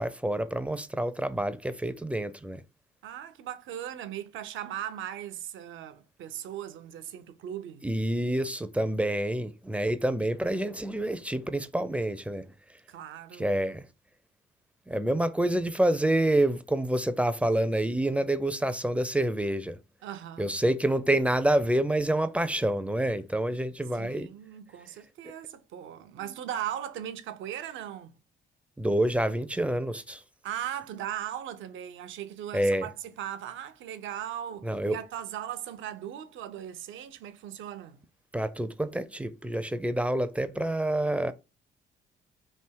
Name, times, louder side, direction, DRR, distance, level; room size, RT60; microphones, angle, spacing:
voice 1, 0.0-2.6 7.8-12.4 13.4-13.8 14.9-19.8 20.4-24.3 28.8-30.2 32.5-32.9 34.6-35.0 38.3-41.3, right 1 dB, 5° right, 0.4 m, -27 dB
voice 2, 3.0-7.9 10.2-10.3 12.9-13.6 20.0-20.5 23.9-28.1 30.4-38.0, right 10 dB, 80° right, 0.6 m, -38 dB
3.4 x 2.8 x 4.5 m
cardioid pair, 90°, 20 cm